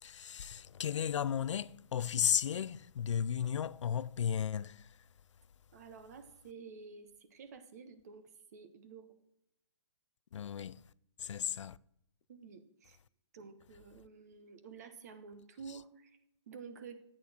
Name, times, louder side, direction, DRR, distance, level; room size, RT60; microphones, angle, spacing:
voice 1, 0.0-5.0 10.3-10.8 11.2-11.8, left 8 dB, 75° left, 0.4 m, -34 dB
voice 2, 5.7-9.2 12.3-13.0 13.3-16.2 16.5-17.0, right 5 dB, 35° right, 0.9 m, -51 dB
11.5 x 8.6 x 4.3 m
hypercardioid pair, 175°, 15 cm